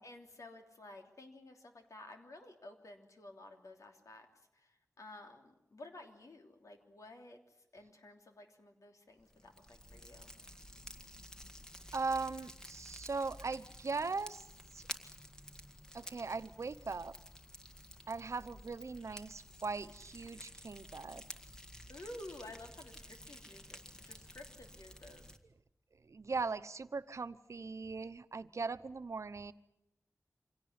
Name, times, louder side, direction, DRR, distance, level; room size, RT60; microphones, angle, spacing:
voice 1, 0.0-10.3 21.9-25.3, left 1 dB, 85° left, 4 dB, 3.2 m, -53 dB
Fire, 9.2-25.4, equal, 15° left, 1.8 m, -52 dB
voice 2, 11.9-14.4 14.7-14.8 15.9-17.1 18.1-21.2 26.1-29.5, right 4 dB, 65° right, 13 dB, 0.9 m, -39 dB
25.5 x 17.5 x 9.6 m, 0.88 s
wide cardioid pair, 80°, 5 cm